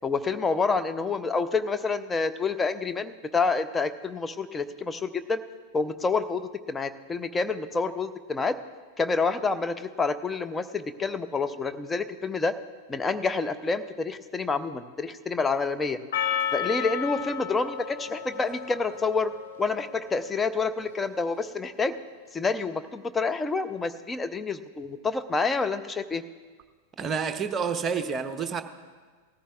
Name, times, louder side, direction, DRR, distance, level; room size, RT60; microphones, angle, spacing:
voice 1, 0.0-5.4 5.7-8.5 9.0-12.5 12.9-16.0 16.5-19.3 19.6-22.0 22.3-26.2, left 4 dB, 15° left, 10 dB, 0.6 m, -28 dB
Percussion, 16.1-20.4, left 9 dB, 60° left, 0.8 m, -33 dB
voice 2, 27.0-28.6, right 6 dB, 25° right, 8 dB, 0.8 m, -29 dB
18.5 x 14.0 x 2.4 m, 1.5 s
figure-of-eight pair, 90°, 0 cm